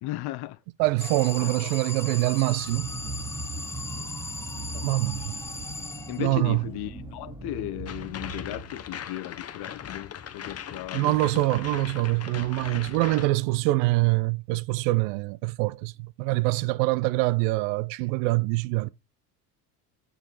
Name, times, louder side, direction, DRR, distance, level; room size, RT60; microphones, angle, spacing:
voice 1, 0.0-0.6 1.4-1.7 3.9-4.2 6.1-11.6 16.6-16.7, left 15 dB, 55° left, 0.9 m, -36 dB
voice 2, 0.8-2.9 4.7-5.4 6.2-6.6 10.9-18.9, right 20 dB, 65° right, 0.7 m, -25 dB
Alarm, 1.0-6.6, left 2 dB, 5° left, 0.5 m, -38 dB
sound 1, 2.5-9.0, right 2 dB, 10° right, 1.7 m, -39 dB
sound 2, 7.9-13.3, left 9 dB, 30° left, 1.1 m, -39 dB
7.9 x 6.8 x 4.5 m
hypercardioid pair, 80°, 46 cm